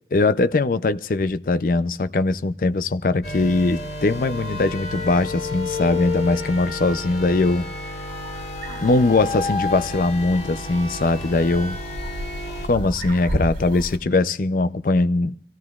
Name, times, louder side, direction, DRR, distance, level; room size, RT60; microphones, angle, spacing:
voice 1, 0.1-7.7 8.8-11.8 12.6-15.3, left 2 dB, 50° left, 0.4 m, -21 dB
sound 1, 3.2-12.7, left 3 dB, 65° left, 2.9 m, -31 dB
sound 2, 8.1-14.0, right 1 dB, 50° right, 2.6 m, -34 dB
25.0 x 16.0 x 2.4 m
head